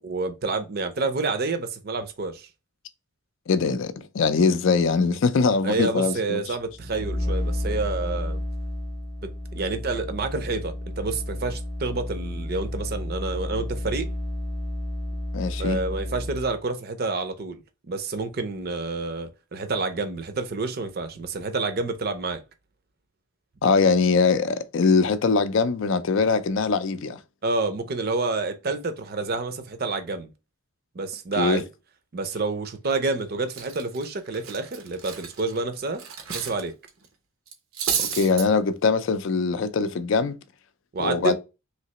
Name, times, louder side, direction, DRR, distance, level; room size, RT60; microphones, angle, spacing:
voice 1, 0.0-2.5 5.6-8.4 9.2-14.1 15.6-17.6 17.9-22.4 27.4-30.3 30.9-31.6 32.1-36.0 36.3-36.7 40.9-41.3, right 3 dB, 45° right, 0.5 m, -28 dB
voice 2, 3.5-6.5 15.3-15.8 23.6-27.2 31.4-31.6 38.0-40.4 41.0-41.3, left 4 dB, 60° left, 0.4 m, -22 dB
sound 1, 6.7-16.6, left 1 dB, 20° left, 0.7 m, -31 dB
Cutlery silverware, 32.9-33.1 33.5-36.6 36.9-37.1 37.5-38.5, right 7 dB, 80° right, 0.7 m, -31 dB
3.2 x 2.8 x 2.8 m
head